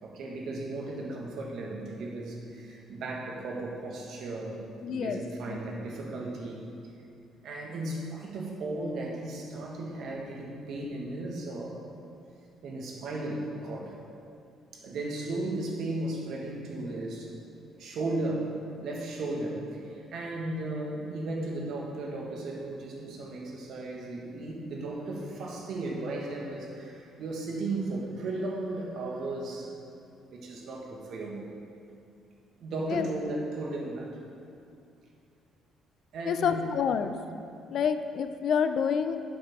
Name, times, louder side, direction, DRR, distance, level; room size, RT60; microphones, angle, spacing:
voice 1, 0.0-6.6 7.4-11.8 12.6-13.9 14.7-17.3 17.8-18.5 18.8-29.7 30.3-31.5 32.6-34.2 36.1-36.7 37.5-37.6, right 2 dB, 60° right, -1 dB, 1.6 m, -35 dB
voice 2, 4.8-5.2 5.5-5.6 32.9-33.1 36.3-37.2 37.7-39.2, left 7 dB, 50° left, 9 dB, 0.4 m, -28 dB
11.5 x 7.8 x 3.7 m, 2.5 s
cardioid pair, 155°, 0 cm